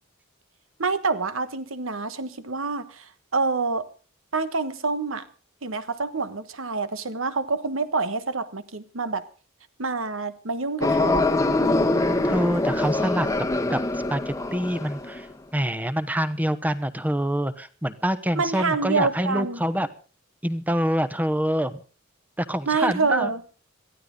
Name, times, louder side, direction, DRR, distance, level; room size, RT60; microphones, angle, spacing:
voice 1, 0.8-3.0 3.3-3.9 4.3-5.3 5.6-9.2 9.8-11.3 18.3-19.6 22.7-23.4, right 4 dB, 75° right, 12 dB, 1.4 m, -27 dB
sound 1, 10.8-15.2, left 2 dB, 15° left, 1.1 m, -24 dB
voice 2, 11.9-13.3 13.7-15.3 15.5-19.9 20.4-21.8 22.4-23.3, equal, 10° right, 13 dB, 1.0 m, -26 dB
22.5 x 14.5 x 3.9 m, 0.37 s
head